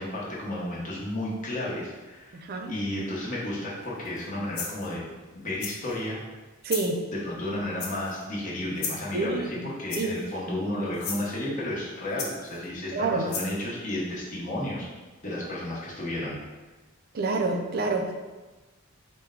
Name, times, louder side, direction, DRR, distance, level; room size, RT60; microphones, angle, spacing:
voice 1, 0.0-5.0 5.3-6.2 7.1-14.9 15.2-16.4, left 1 dB, 35° left, -5 dB, 0.9 m, -32 dB
voice 2, 2.3-2.7 6.6-7.0 9.1-9.6 10.0-10.1 12.9-13.3 17.1-18.1, right 3 dB, 45° right, 3 dB, 0.4 m, -27 dB
sound 1, 4.1-4.2 4.6-4.9 5.6-6.0 6.7-6.9 7.8-8.2 8.8-9.1 9.9-10.3 10.9-11.2 12.2-12.6 13.3-13.6, left 5 dB, 80° left, 0.6 m, -34 dB
4.4 x 2.1 x 3.6 m, 1.2 s
head